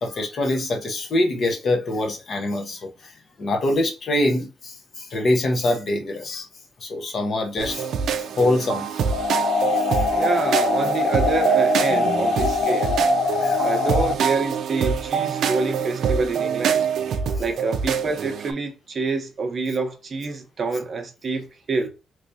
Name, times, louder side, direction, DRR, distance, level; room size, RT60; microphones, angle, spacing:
voice 1, 0.0-2.9 3.4-6.5 6.8-7.9 8.3-8.9 10.1-10.3 13.4-13.7, left 1 dB, 45° left, 0.8 m, -24 dB
sound 1, 7.6-18.5, right 7 dB, 70° right, 0.4 m, -25 dB
sound 2, 9.1-14.1, left 5 dB, 65° left, 0.5 m, -23 dB
voice 2, 10.1-13.0 13.6-16.8 17.4-21.9, right 4 dB, 40° right, 0.7 m, -27 dB
3.2 x 3.1 x 2.6 m
cardioid pair, 140°, 0 cm